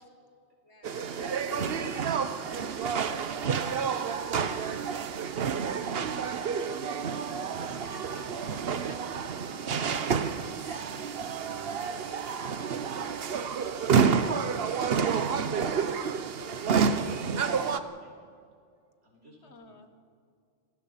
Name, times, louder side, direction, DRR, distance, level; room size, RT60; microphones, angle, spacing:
voice 1, 0.6-1.4 4.2-4.9 7.6-8.0 8.9-9.0 10.7-10.9 13.7-15.2 19.4-19.9, left 3 dB, 65° left, 7 dB, 1.7 m, -49 dB
sound 1, 0.8-17.8, right 6 dB, 55° right, 1.0 m, -29 dB
voice 2, 1.2-2.3 2.7-3.7 7.2-8.5 8.8-10.0 10.7-11.4 14.8-18.1 19.0-19.9, equal, 70° right, 0 dB, 5.1 m, -50 dB
27.5 x 18.5 x 5.8 m, 2.3 s
omnidirectional pair, 1.3 m